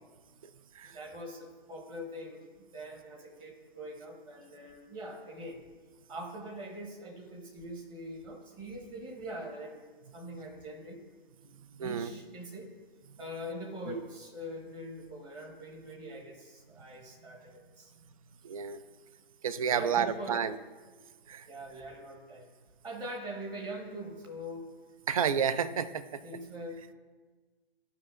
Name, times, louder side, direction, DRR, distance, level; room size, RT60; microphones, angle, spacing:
voice 1, 0.9-5.6 6.1-9.7 10.1-11.0 11.4-11.5 11.8-12.7 13.2-17.9 19.7-20.4 21.4-22.5 22.8-24.7 26.2-26.8, equal, 15° right, 1 dB, 1.0 m, -43 dB
voice 2, 11.8-12.1 13.9-14.0 18.4-18.8 19.4-20.6 21.3-21.5 25.1-26.2, right 7 dB, 35° right, 13 dB, 0.4 m, -30 dB
14.0 x 5.4 x 2.5 m, 1.3 s
figure-of-eight pair, 135°, 30 cm